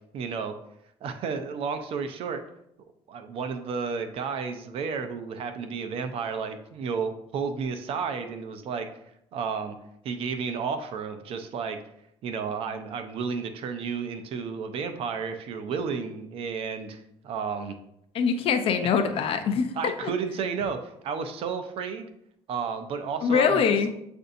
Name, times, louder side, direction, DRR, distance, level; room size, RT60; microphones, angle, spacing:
voice 1, 0.1-0.5 1.0-2.4 3.1-8.9 9.3-9.8 10.0-11.8 12.2-17.8 19.8-22.1 22.5-23.6, right 5 dB, 65° right, 8 dB, 0.6 m, -32 dB
voice 2, 18.1-19.7 20.0-20.1 23.2-23.9, left 6 dB, 60° left, 7 dB, 0.6 m, -23 dB
7.7 x 2.6 x 2.6 m, 0.77 s
cardioid pair, 105°, 11 cm